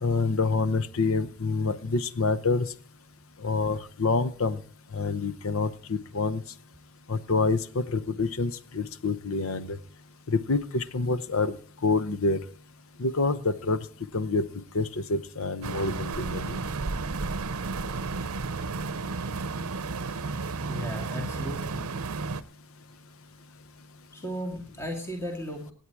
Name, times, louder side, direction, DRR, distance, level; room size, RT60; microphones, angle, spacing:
voice 1, 0.0-2.7 3.4-4.6 4.9-6.4 7.1-9.8 10.3-11.5 11.8-12.4 13.0-13.8 14.1-14.4 14.7-16.6, left 3 dB, 70° left, 14 dB, 0.8 m, -27 dB
sound 1, 15.6-22.4, right 3 dB, 80° right, 0.7 m, -32 dB
voice 2, 20.3-21.9 24.1-25.7, equal, 10° left, 2 dB, 2.1 m, -36 dB
17.0 x 9.0 x 4.7 m, 0.40 s
head